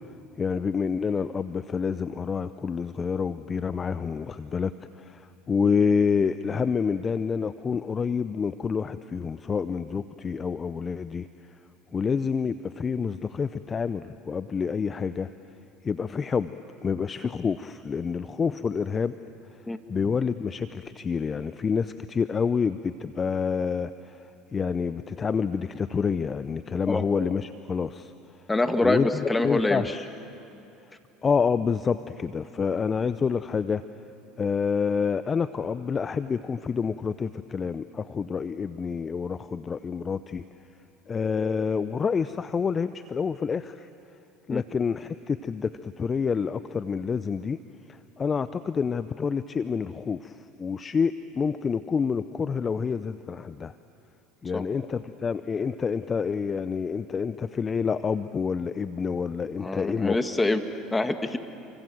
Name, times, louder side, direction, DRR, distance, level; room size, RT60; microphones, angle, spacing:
voice 1, 0.4-4.7 5.0-11.3 11.9-15.3 15.8-16.5 16.8-19.1 19.9-24.2 24.5-28.1 28.8-29.1 29.4-30.1 31.2-33.8 34.4-40.4 41.1-43.9 44.5-47.6 48.2-53.7 54.4-60.2, left 6 dB, 30° left, 13 dB, 0.7 m, -28 dB
voice 2, 28.5-29.9 44.5-44.6 54.5-54.6 59.6-60.6 60.9-61.4, left 2 dB, 15° left, 8 dB, 2.0 m, -25 dB
30.0 x 24.5 x 7.8 m, 2.7 s
hypercardioid pair, 80°, 0 cm